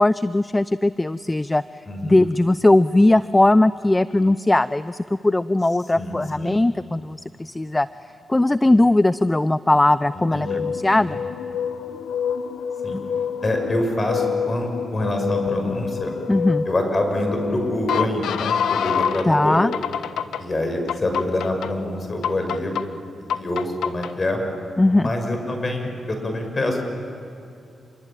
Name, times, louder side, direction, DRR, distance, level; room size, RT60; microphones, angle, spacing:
voice 1, 0.0-1.6 2.0-7.9 8.3-11.2 16.3-16.6 19.2-19.7 24.8-25.1, left 2 dB, 20° left, 16 dB, 0.6 m, -19 dB
voice 2, 1.9-2.2 6.0-6.5 10.1-10.7 10.9-11.2 12.8-13.0 13.4-16.1 16.6-19.6 20.4-22.8 23.3-24.4 24.9-26.8, left 1 dB, 40° left, 4 dB, 6.9 m, -26 dB
sound 1, 10.2-19.3 19.7-20.4 20.9-21.7 22.2-22.8 23.3-24.1, left 7 dB, 80° left, 0.9 m, -27 dB
28.0 x 23.0 x 9.2 m, 2.6 s
supercardioid pair, 50°, 0 cm